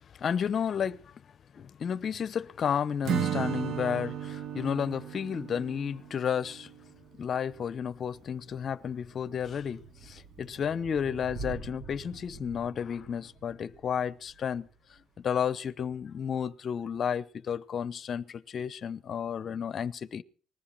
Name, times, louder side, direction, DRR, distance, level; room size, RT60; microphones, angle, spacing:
voice 1, 0.1-1.1 1.5-6.7 7.2-20.2, left 7 dB, 50° left, 0.8 m, -32 dB
Acoustic guitar / Strum, 3.0-7.0, right 8 dB, 70° right, 1.4 m, -34 dB
Thunder / Rain, 7.0-15.2, right 5 dB, 45° right, 6.1 m, -47 dB
20.5 x 14.5 x 4.6 m
cardioid pair, 90°, 0 cm